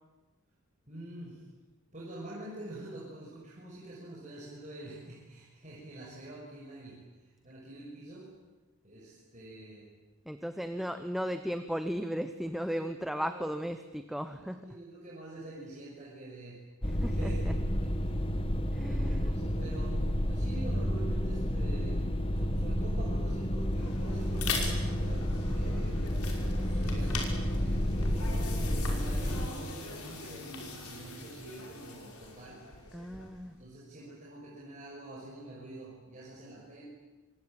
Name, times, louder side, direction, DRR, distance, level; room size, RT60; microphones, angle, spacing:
voice 1, 0.9-1.4 1.9-8.3 8.8-9.9 12.7-13.5 14.2-16.6 17.1-18.1 18.7-22.0 22.3-26.0 26.5-32.6 33.6-36.8, right 2 dB, 35° right, -5 dB, 6.0 m, -46 dB
voice 2, 10.3-14.6 16.9-17.5 18.7-19.3 32.9-33.5, equal, ahead, 8 dB, 1.0 m, -36 dB
sound 1, 16.8-29.5, equal, 25° left, 1.9 m, -30 dB
sound 2, 23.6-33.5, left 4 dB, 85° left, 5.7 m, -41 dB
27.0 x 23.0 x 9.1 m, 1.2 s
head